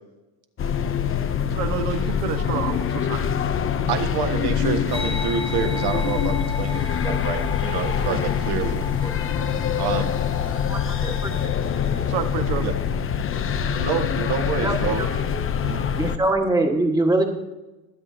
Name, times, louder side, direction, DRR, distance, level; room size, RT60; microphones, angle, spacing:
sound 1, 0.6-16.2, left 8 dB, 25° left, 0.7 m, -24 dB
voice 1, 1.5-3.3 12.1-12.6, right 8 dB, 85° right, 5 dB, 1.5 m, -29 dB
voice 2, 3.9-8.8 9.8-10.1 12.6-12.8 13.8-15.0 15.6-15.9, right 7 dB, 50° right, 6 dB, 1.6 m, -27 dB
sound 2, 4.9-11.5, left 2 dB, 10° left, 1.4 m, -36 dB
voice 3, 14.6-15.1 16.0-17.2, right 2 dB, 10° right, 2 dB, 1.6 m, -22 dB
23.5 x 8.2 x 2.8 m, 1.1 s
supercardioid pair, 115°, 50 cm